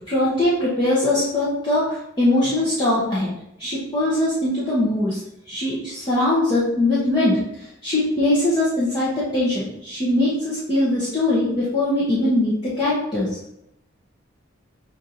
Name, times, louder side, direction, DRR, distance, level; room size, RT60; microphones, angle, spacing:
voice 1, 0.1-3.3 3.6-5.2 5.5-7.4 7.8-13.3, left 1 dB, 20° left, -10 dB, 0.9 m, -21 dB
6.2 x 2.5 x 2.8 m, 0.78 s
head